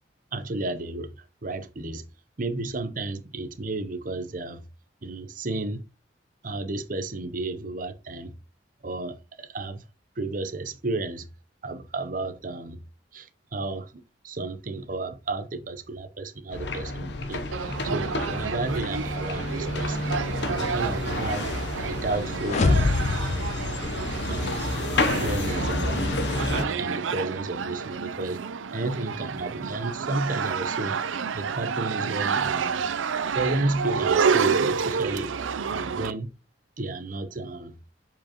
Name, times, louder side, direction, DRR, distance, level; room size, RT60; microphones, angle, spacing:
voice 1, 0.3-1.1 1.4-2.0 2.4-4.6 5.0-5.8 6.4-8.3 8.8-9.8 10.2-11.3 11.6-12.8 13.1-13.9 14.2-17.4 17.8-20.2 20.6-21.5 21.8-22.9 24.3-24.7 25.2-26.1 26.5-28.4 28.7-31.0 31.3-32.8 33.3-35.3 35.7-36.3 36.8-37.7, right 2 dB, 45° right, 0.7 m, -32 dB
sound 1, 16.5-26.7, left 2 dB, 60° left, 0.8 m, -30 dB
sound 2, 17.5-36.1, right 6 dB, 90° right, 0.5 m, -29 dB
sound 3, 22.4-24.6, left 3 dB, 35° left, 0.3 m, -25 dB
7.1 x 4.9 x 2.9 m
head